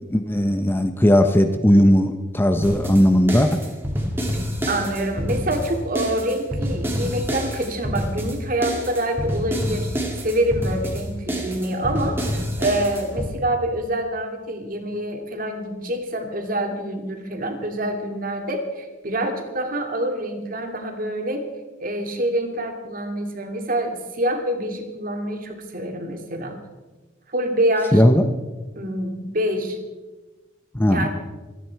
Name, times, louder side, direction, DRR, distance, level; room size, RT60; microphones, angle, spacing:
voice 1, 0.1-3.5 27.9-28.3 30.7-31.1, equal, 10° left, 7 dB, 0.7 m, -17 dB
sound 1, 2.6-13.3, equal, 10° right, 2.4 m, -27 dB
voice 2, 4.7-9.9 10.2-21.5 21.8-26.6 27.3-28.1 28.8-29.8 30.9-31.1, right 1 dB, 45° right, 4 dB, 2.3 m, -26 dB
25.5 x 9.9 x 4.6 m, 1.2 s
head